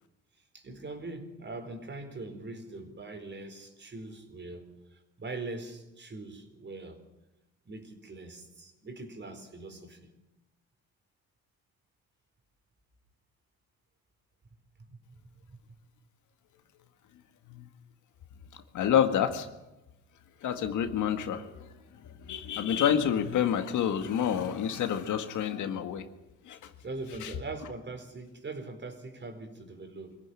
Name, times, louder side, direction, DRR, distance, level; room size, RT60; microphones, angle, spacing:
voice 1, 0.5-7.0 7.7-10.1 14.8-15.2 15.5-15.6 26.8-30.2, right 2 dB, 35° right, 7 dB, 4.6 m, -42 dB
voice 2, 18.7-19.5 20.4-21.7 22.0-26.1 26.5-26.7 27.2-27.3, left 9 dB, 75° left, 8 dB, 1.9 m, -28 dB
24.0 x 16.0 x 10.0 m, 1.0 s
cardioid pair, 90°, 30 cm